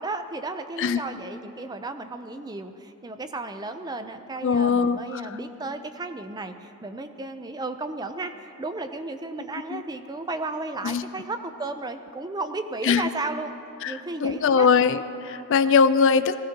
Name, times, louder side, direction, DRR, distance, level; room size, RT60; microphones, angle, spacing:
voice 1, 0.0-13.5 13.8-14.7, right 2 dB, 20° right, 8 dB, 0.5 m, -34 dB
voice 2, 4.4-5.2 9.7-9.8 10.8-11.0 12.8-13.0 13.8-16.4, left 5 dB, 55° left, 12 dB, 0.4 m, -21 dB
19.0 x 15.5 x 2.9 m, 2.8 s
head